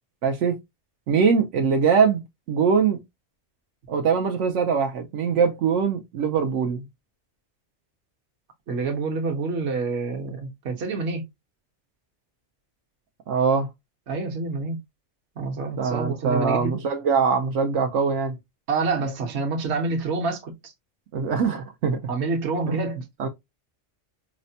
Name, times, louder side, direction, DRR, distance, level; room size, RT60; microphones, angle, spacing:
voice 1, 0.2-0.6 1.1-2.2 2.5-3.0 3.9-6.8 13.3-13.7 15.8-18.4 21.1-22.0 22.7-22.8 23.2-23.3, right 6 dB, 90° right, 1.0 m, -22 dB
voice 2, 8.7-11.2 14.1-14.8 15.4-16.7 18.7-20.7 22.1-23.3, right 3 dB, 65° right, 1.1 m, -27 dB
4.9 x 2.1 x 2.7 m
omnidirectional pair, 1.2 m